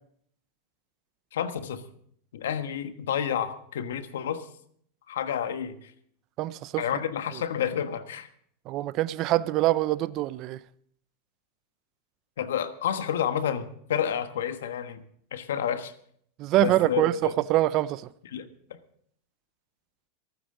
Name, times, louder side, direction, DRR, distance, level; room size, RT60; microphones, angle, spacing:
voice 1, 1.3-1.8 2.3-4.4 5.1-5.8 6.8-8.3 12.4-15.0 15.3-15.9 16.6-17.3 18.3-18.5, left 9 dB, 90° left, 1.3 m, -30 dB
voice 2, 6.4-6.8 8.7-10.6 16.4-18.0, right 15 dB, 45° right, 0.6 m, -24 dB
27.0 x 9.4 x 3.8 m
supercardioid pair, 130°, 0 cm